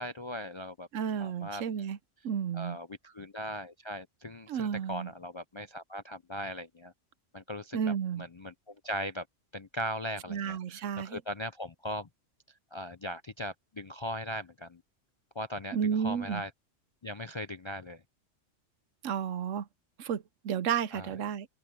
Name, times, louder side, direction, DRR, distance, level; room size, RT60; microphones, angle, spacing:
voice 1, 0.0-0.9 1.2-1.9 2.5-6.9 7.3-9.3 9.5-12.1 12.7-14.8 15.4-16.5 17.0-18.0 20.9-21.2, equal, 40° left, 0.4 m, -39 dB
voice 2, 0.9-2.0 2.2-2.8 4.5-5.1 7.7-8.2 10.3-11.2 15.7-16.4 19.0-19.7 20.0-21.5, right 8 dB, 80° right, 1.1 m, -32 dB
omnidirectional pair, 1.3 m